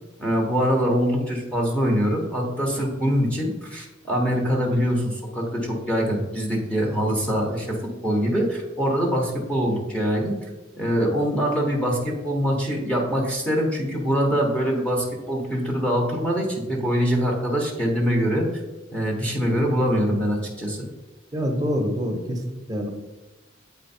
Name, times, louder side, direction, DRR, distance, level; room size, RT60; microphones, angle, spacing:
voice 1, 0.2-7.8 8.0-10.4 10.8-18.6 18.9-20.8, equal, 5° left, -1 dB, 1.3 m, -23 dB
voice 2, 21.3-22.9, equal, 20° right, 1 dB, 1.2 m, -26 dB
8.1 x 4.5 x 4.4 m, 1.1 s
head